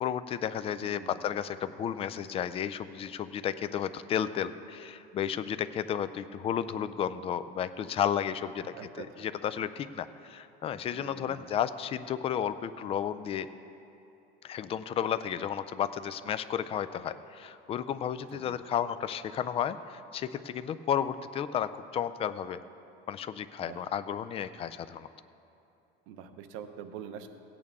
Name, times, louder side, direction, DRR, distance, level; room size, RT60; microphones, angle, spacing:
voice 1, 0.0-13.5 14.4-22.6 23.1-25.1, left 9 dB, 30° left, 13 dB, 0.3 m, -33 dB
voice 2, 0.8-1.3 8.7-9.1 10.9-11.5 18.3-18.4 23.6-23.8 26.1-27.3, right 8 dB, 70° right, 8 dB, 0.8 m, -44 dB
16.5 x 8.7 x 3.6 m, 2.8 s
cardioid pair, 145°, 21 cm